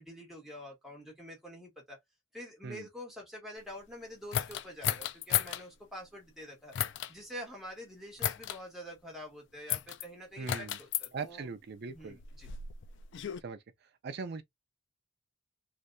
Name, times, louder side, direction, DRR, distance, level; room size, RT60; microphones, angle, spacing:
voice 1, 0.0-2.0 2.3-6.7 7.1-11.5 11.9-12.5, equal, ahead, 1.5 m, -46 dB
sound 1, 4.3-5.6 6.7-7.1 8.2-8.6 9.7-10.0 10.5-11.1 12.0-13.4, left 11 dB, 60° left, 0.4 m, -33 dB
voice 2, 10.4-10.8 11.1-12.2 13.4-14.4, right 4 dB, 50° right, 0.4 m, -41 dB
3.3 x 2.7 x 2.5 m
head